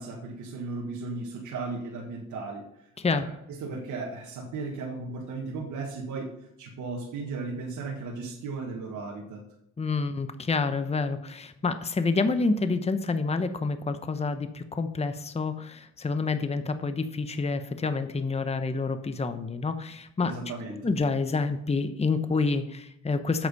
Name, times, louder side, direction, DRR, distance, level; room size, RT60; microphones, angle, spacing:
voice 1, 0.0-6.3 6.6-9.4 20.2-20.9, right 3 dB, 80° right, -1 dB, 1.8 m, -36 dB
voice 2, 3.0-3.3 9.8-20.3 20.7-23.5, left 4 dB, 20° left, 9 dB, 0.9 m, -28 dB
8.1 x 8.1 x 5.4 m, 0.79 s
cardioid pair, 90°, 30 cm